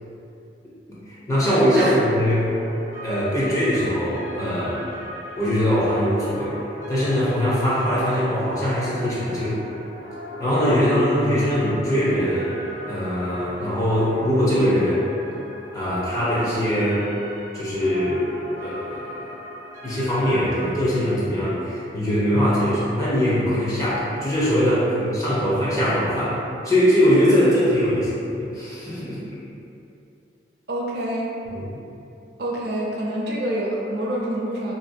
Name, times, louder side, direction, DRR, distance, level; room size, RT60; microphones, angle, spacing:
voice 1, 0.9-2.5 3.0-4.8 5.4-6.5 6.9-9.6 10.4-12.5 12.9-15.1 15.7-17.1 17.5-18.2 18.6-19.3 19.8-26.4 26.6-29.2 31.5-31.8, equal, 20° left, -9 dB, 0.6 m, -21 dB
sound 1, 1.8-20.8, left 1 dB, 20° right, 0.8 m, -38 dB
voice 2, 30.7-31.4 32.4-34.7, right 1 dB, 65° right, -4 dB, 0.5 m, -26 dB
2.6 x 2.6 x 2.2 m, 2.7 s
head